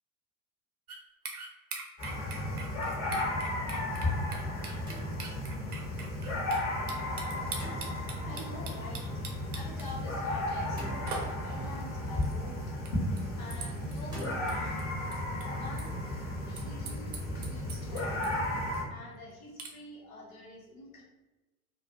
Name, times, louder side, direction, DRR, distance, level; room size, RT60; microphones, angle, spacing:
sound 1, 0.9-1.0 1.3-6.6 6.9-9.9 11.1-11.3 12.2-12.3 12.9-13.0 13.2-13.3 13.5-14.8 15.1-15.9 16.2-16.3 16.6-18.5 18.7-18.8 19.6-19.7, right 4 dB, 80° right, 0.6 m, -42 dB
sound 2, 2.0-18.8, left 1 dB, 30° left, 1.0 m, -34 dB
sound 3, 4.9-5.6 7.6-8.3 10.8-11.7 14.1-14.5, equal, 10° right, 0.9 m, -44 dB
voice 1, 8.2-9.2 9.5-12.7 13.3-14.9 15.5-16.0 16.5-17.2 17.5-18.5 18.9-21.0, left 2 dB, 65° left, -3 dB, 1.0 m, -47 dB
2.4 x 2.1 x 2.7 m, 1.1 s
figure-of-eight pair, 70°, 44 cm